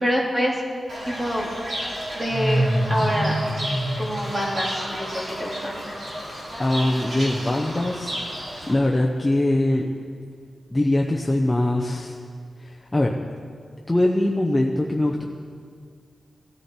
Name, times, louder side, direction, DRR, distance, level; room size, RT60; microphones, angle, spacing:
voice 1, 0.0-0.6 1.1-1.5 2.2-2.6 2.9-3.3 4.0-5.8, equal, 15° right, -3 dB, 2.5 m, -26 dB
Fowl / Bird, 0.9-8.7, equal, 50° right, 3.8 m, -28 dB
voice 2, 6.6-8.1 8.7-9.9 10.7-12.2 12.6-13.1 13.9-15.2, left 1 dB, 10° left, -1 dB, 0.8 m, -22 dB
18.5 x 13.5 x 4.4 m, 2.1 s
wide cardioid pair, 165°, 0 cm